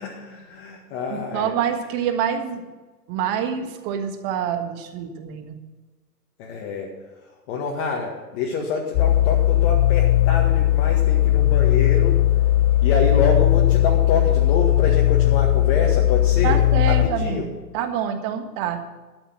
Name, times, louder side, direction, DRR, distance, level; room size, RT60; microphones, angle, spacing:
voice 1, 0.0-1.5 6.4-6.9 7.2-12.2 12.8-17.5, left 4 dB, 40° left, -2 dB, 1.9 m, -27 dB
voice 2, 1.1-2.6 3.1-5.6 16.4-18.8, right 8 dB, 35° right, 7 dB, 1.5 m, -26 dB
sound 1, 8.9-17.1, left 13 dB, 25° left, 0.6 m, -18 dB
12.5 x 7.4 x 7.5 m, 1.3 s
hypercardioid pair, 125°, 49 cm